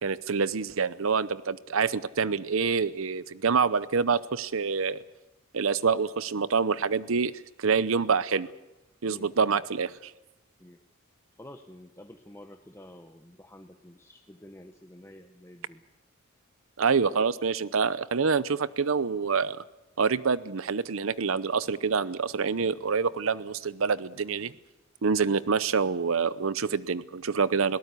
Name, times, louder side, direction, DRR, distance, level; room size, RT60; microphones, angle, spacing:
voice 1, 0.0-5.0 5.5-8.5 9.0-10.1 16.8-19.6 20.0-24.5 25.0-27.8, right 5 dB, 75° right, 17 dB, 0.7 m, -26 dB
voice 2, 9.1-9.6 10.6-10.8 11.4-15.8 25.4-25.9, left 1 dB, 15° left, 5 dB, 1.0 m, -49 dB
21.5 x 18.5 x 8.3 m, 0.98 s
head